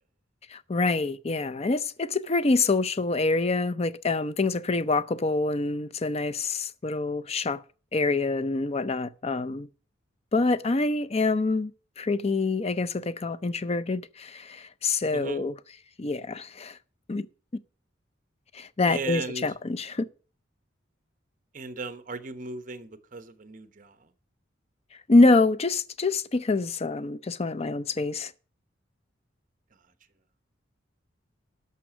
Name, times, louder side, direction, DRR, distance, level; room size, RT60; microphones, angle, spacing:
voice 1, 0.5-7.6 7.9-9.7 10.3-11.7 12.0-15.6 16.0-16.8 17.1-17.3 18.5-20.1 25.1-28.3, left 3 dB, 30° left, 0.5 m, -26 dB
voice 2, 15.1-15.4 18.9-19.5 21.5-24.0, right 3 dB, 40° right, 0.9 m, -37 dB
12.5 x 5.8 x 6.0 m
head